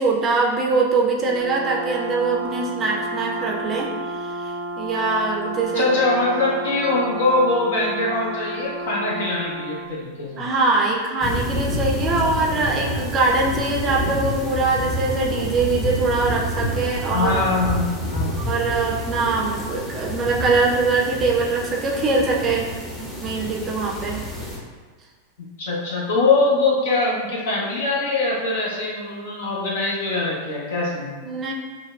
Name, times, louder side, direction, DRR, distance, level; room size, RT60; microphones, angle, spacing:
voice 1, 0.0-5.9 10.4-17.5 18.5-22.7 23.0-24.2 31.2-31.5, right 3 dB, 25° right, -2 dB, 0.6 m, -22 dB
Brass instrument, 1.2-9.9, right 1 dB, 75° left, 1.3 m, -31 dB
voice 2, 5.7-10.4 17.1-18.3 25.6-31.2, left 3 dB, 60° left, -4 dB, 0.9 m, -22 dB
sound 1, 11.2-24.6, left 1 dB, 15° left, 0.8 m, -28 dB
5.8 x 2.2 x 2.4 m, 1.5 s
figure-of-eight pair, 90°, 0 cm